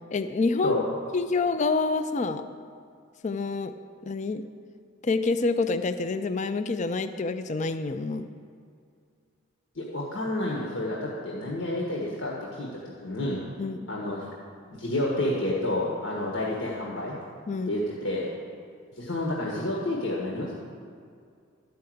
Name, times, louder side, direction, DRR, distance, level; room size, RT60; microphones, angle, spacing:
voice 1, 0.1-0.8 1.1-2.4 3.2-3.7 4.1-4.4 5.0-8.3 13.6-13.8 17.5-17.8, left 3 dB, 35° left, 10 dB, 0.4 m, -27 dB
voice 2, 9.7-12.7 13.0-13.4 13.9-14.3 14.7-17.1 17.7-18.3 19.0-20.5, left 1 dB, 75° left, -4 dB, 1.5 m, -29 dB
12.0 x 5.7 x 7.7 m, 2.3 s
head